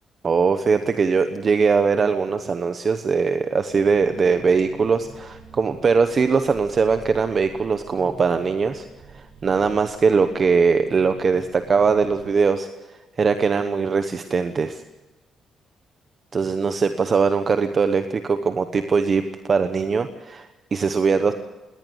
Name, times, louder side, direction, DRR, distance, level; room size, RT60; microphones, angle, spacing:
voice 1, 0.2-8.8 9.1-12.7 13.2-14.8 16.3-19.2 19.5-21.3, right 5 dB, 30° right, 9 dB, 1.1 m, -21 dB
sound 1, 3.7-12.3, right 4 dB, 55° right, 5.3 m, -46 dB
21.5 x 18.5 x 8.1 m, 1.1 s
cardioid pair, 160°, 0 cm